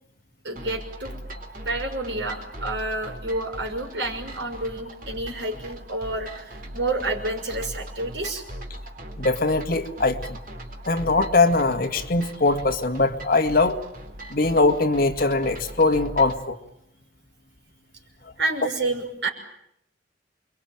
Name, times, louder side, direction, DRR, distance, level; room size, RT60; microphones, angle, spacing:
voice 1, 0.4-1.1 1.6-8.4 18.4-19.3, right 2 dB, 70° right, 3 dB, 6.1 m, -29 dB
sound 1, 0.6-16.4, right 1 dB, 50° right, 4.0 m, -39 dB
voice 2, 9.2-10.4 10.9-13.8 14.3-16.6, left 3 dB, 50° left, 6 dB, 2.0 m, -21 dB
29.0 x 23.0 x 9.0 m, 0.78 s
head